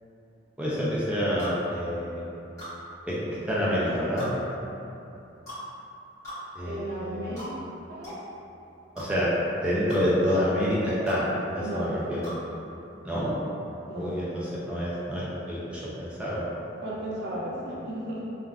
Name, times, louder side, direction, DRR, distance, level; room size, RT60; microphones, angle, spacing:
voice 1, 0.6-2.2 3.1-3.2 3.5-4.3 6.6-7.4 9.0-9.3 9.6-11.2 11.5-12.2 13.0-13.3 14.0-14.2 14.6-16.4, equal, 5° right, -8 dB, 0.4 m, -27 dB
sound 1, 1.4-1.6 2.6-2.7 4.2-4.3 5.5-5.6 6.2-6.4 7.4-7.5 8.0-8.2 9.0-9.1 9.9-10.0 11.1-11.2 12.2-12.4, equal, 15° left, 1.4 m, -39 dB
voice 2, 6.6-7.6 7.9-8.2 11.6-12.0 13.9-14.3 16.8-18.2, right 1 dB, 60° right, -6 dB, 0.6 m, -34 dB
3.3 x 2.5 x 2.2 m, 2.8 s
head